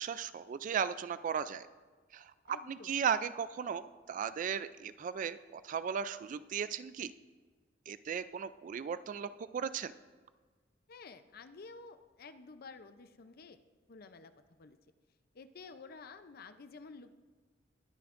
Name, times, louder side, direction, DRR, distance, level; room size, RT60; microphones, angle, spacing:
voice 1, 0.0-1.7 2.1-7.1 7.9-9.9, right 7 dB, 45° right, 14 dB, 0.3 m, -36 dB
voice 2, 2.4-3.0 10.9-13.6 13.9-14.8 15.3-17.1, left 4 dB, 55° left, 10 dB, 0.6 m, -51 dB
20.5 x 9.5 x 2.5 m, 1.4 s
head